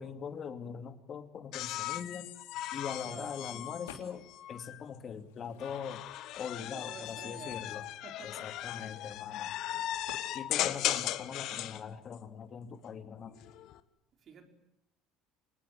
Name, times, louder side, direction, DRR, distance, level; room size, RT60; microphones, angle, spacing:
voice 1, 0.0-2.3 2.7-6.0 6.4-7.9 8.2-9.6 10.3-13.4, left 7 dB, 45° left, 2.6 m, -42 dB
sound 1, 1.5-4.8 5.6-11.8 13.3-13.8, left 14 dB, 65° left, 1.4 m, -37 dB
voice 2, 3.0-3.4 6.6-7.6 8.0-8.5 14.2-14.5, right 6 dB, 50° right, 5.0 m, -50 dB
sound 2, 3.9-4.4 4.8-6.0 6.7-6.8 7.0-9.2 10.1-10.4, left 8 dB, 85° left, 3.1 m, -53 dB
26.0 x 19.5 x 9.4 m
hypercardioid pair, 80°, 0 cm